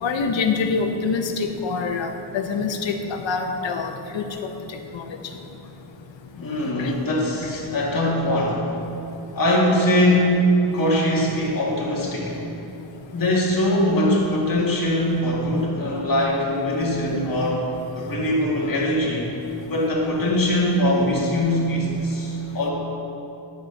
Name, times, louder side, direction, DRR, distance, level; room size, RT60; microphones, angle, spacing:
voice 1, 0.0-3.0 3.2-4.2 4.9-5.0 6.8-6.9, left 5 dB, 70° left, 5 dB, 0.9 m, -25 dB
voice 2, 6.4-8.6 9.4-12.4 13.1-17.7 17.9-19.3 19.7-22.7, left 1 dB, 45° left, -4 dB, 1.9 m, -22 dB
11.5 x 4.3 x 6.4 m, 2.9 s
wide cardioid pair, 165°, 46 cm